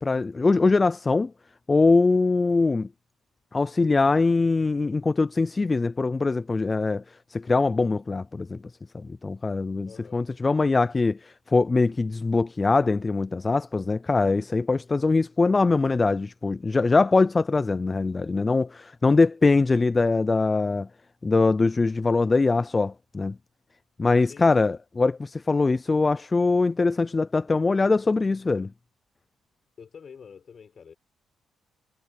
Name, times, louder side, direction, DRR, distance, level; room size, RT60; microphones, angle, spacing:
voice 1, 0.0-1.3 1.7-2.9 3.5-8.6 8.9-20.9 21.2-23.4 24.0-28.7, left 3 dB, 25° left, 0.4 m, -22 dB
voice 2, 9.8-10.3 24.2-24.8 29.8-30.9, left 6 dB, 50° left, 5.2 m, -47 dB
cardioid pair, 90°, 0 cm